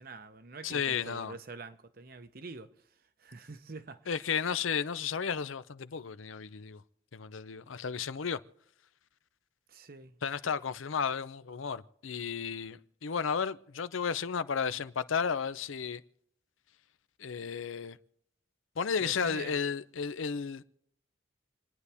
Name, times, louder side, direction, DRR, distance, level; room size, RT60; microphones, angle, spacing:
voice 1, 0.0-2.7 3.2-4.1 9.7-10.2 19.0-19.6, right 3 dB, 50° right, 0.8 m, -46 dB
voice 2, 0.6-1.4 4.1-6.8 7.1-8.4 10.2-16.0 17.2-18.0 18.8-20.6, left 6 dB, 90° left, 0.6 m, -33 dB
29.0 x 9.8 x 3.5 m
head